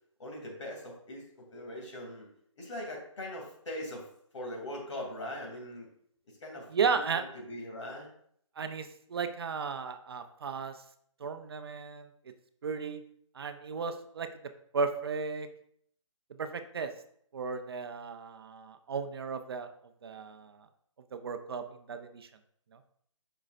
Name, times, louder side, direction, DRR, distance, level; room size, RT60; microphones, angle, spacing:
voice 1, 0.2-2.3 2.6-4.1 4.3-5.9 6.3-8.1, left 1 dB, 65° left, -1 dB, 2.8 m, -41 dB
voice 2, 6.7-7.2 8.6-10.8 11.2-12.1 12.6-13.0 13.3-14.3 14.7-15.5 16.4-16.9 17.3-19.7 20.0-20.6 21.1-22.3, right 5 dB, 50° right, 8 dB, 0.5 m, -34 dB
7.3 x 5.5 x 2.5 m, 0.65 s
hypercardioid pair, 160°, 17 cm